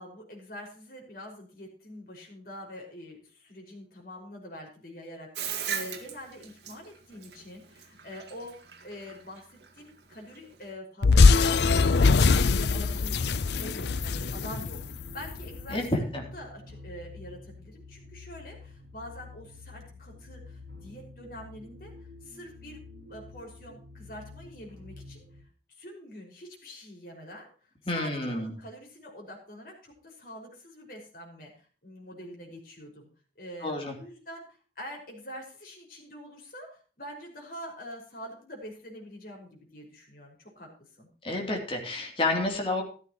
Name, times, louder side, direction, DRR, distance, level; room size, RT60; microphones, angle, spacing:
voice 1, 0.0-8.5 8.8-15.8 16.3-22.8 23.1-25.2 25.7-33.1 33.4-40.7 41.0-41.1, equal, 55° left, 0 dB, 5.5 m, -45 dB
Bathtub (filling or washing), 5.4-10.7, right 8 dB, 75° right, 2.2 m, -38 dB
sound 1, 11.0-15.4, left 4 dB, 75° left, 0.6 m, -21 dB
sound 2, 12.7-25.4, left 3 dB, 55° right, 5.6 m, -48 dB
voice 2, 15.7-16.2 27.9-28.6 33.6-33.9 41.2-42.8, left 2 dB, 30° left, 2 dB, 3.1 m, -29 dB
14.0 x 13.5 x 3.0 m, 0.39 s
head